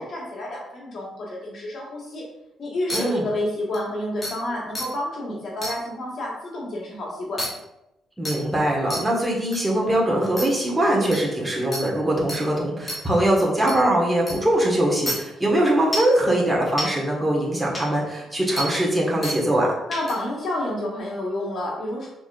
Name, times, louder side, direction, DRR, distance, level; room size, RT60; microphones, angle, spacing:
voice 1, 0.0-2.2 2.6-7.4 19.9-22.1, left 1 dB, 55° left, -4 dB, 1.5 m, -29 dB
sound 1, 2.9-3.0 3.7-3.8 4.2-4.3 4.7-4.9 5.6-5.7 7.4-7.5 8.2-8.4 8.9-9.0 9.5-9.6 10.4-10.5 11.1-11.2 11.7-11.8 12.3-12.4 12.9-13.0 13.7-13.8 14.3-14.4 15.1-15.2 15.9-16.1 16.8-16.9 17.7-17.8 18.6-18.7 19.2-19.4 19.9-20.1, equal, 25° left, 1.6 m, -28 dB
voice 2, 2.9-3.3 8.2-19.7, right 1 dB, 10° right, -3 dB, 1.4 m, -22 dB
6.1 x 3.5 x 2.5 m, 0.89 s
cardioid pair, 90°, 0 cm